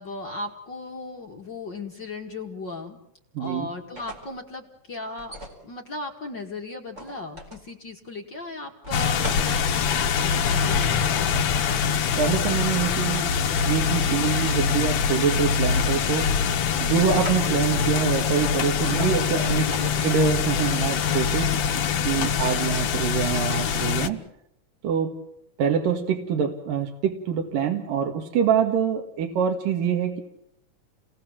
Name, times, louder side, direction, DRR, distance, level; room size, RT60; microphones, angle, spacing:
voice 1, 0.0-3.0 3.4-5.4 5.6-11.2 18.8-19.1 19.5-19.9 22.1-22.5, left 2 dB, 35° left, 1 dB, 2.3 m, -37 dB
voice 2, 3.3-3.7 12.2-13.4 13.6-16.3 16.8-19.7 20.0-21.6 22.0-24.2 24.8-25.1 25.6-30.2, right 7 dB, 80° right, 3 dB, 3.3 m, -25 dB
sound 1, 3.7-4.4 5.2-5.6 6.9-7.7 8.8-9.6 15.2-15.8 16.1-16.6 17.1-17.4 19.0-19.2 19.7-20.2, equal, 20° right, 5.0 m, -39 dB
huge rain, 8.9-24.1, left 7 dB, 60° left, 2.2 m, -24 dB
29.5 x 19.5 x 7.4 m, 0.78 s
omnidirectional pair, 3.8 m